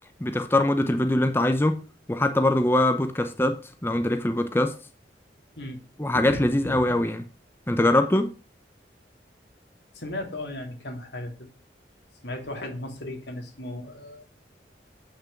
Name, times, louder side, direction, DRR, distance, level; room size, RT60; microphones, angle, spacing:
voice 1, 0.2-1.8 2.1-4.8 6.0-7.3 7.7-8.3, left 1 dB, 15° left, 0.7 m, -23 dB
voice 2, 9.9-11.5 12.2-14.2, left 1 dB, 85° left, 2.8 m, -36 dB
8.7 x 6.1 x 5.8 m
head